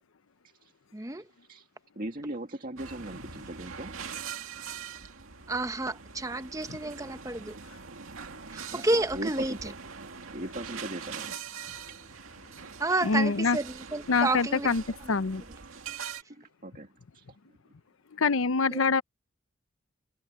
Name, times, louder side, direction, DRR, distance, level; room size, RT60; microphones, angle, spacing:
voice 1, 0.9-1.2 5.5-7.5 8.5-9.7 12.8-14.7 18.7-18.8, right 2 dB, 15° right, 0.9 m, -30 dB
voice 2, 2.0-4.0 8.7-9.7 10.3-11.3 16.0-16.9 17.1-17.2, right 1 dB, 40° right, 2.1 m, -39 dB
sound 1, 2.8-16.2, right 6 dB, 90° right, 2.3 m, -43 dB
voice 3, 13.0-13.6 14.1-14.8 15.1-15.4 18.1-19.0, left 4 dB, 80° left, 0.7 m, -25 dB
head